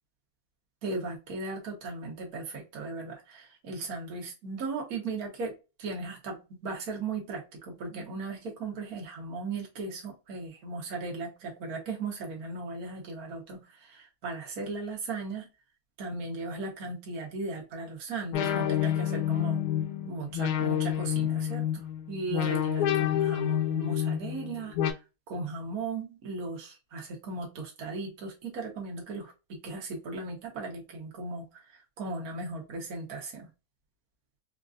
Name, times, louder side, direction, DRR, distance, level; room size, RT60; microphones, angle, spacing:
voice 1, 0.8-5.5 5.8-15.5 16.0-19.6 20.0-24.7 25.3-33.5, right 3 dB, 75° right, -1 dB, 0.8 m, -37 dB
sound 1, 18.3-24.9, left 10 dB, 75° left, 1.8 m, -28 dB
4.4 x 2.5 x 2.5 m, 0.27 s
omnidirectional pair, 3.4 m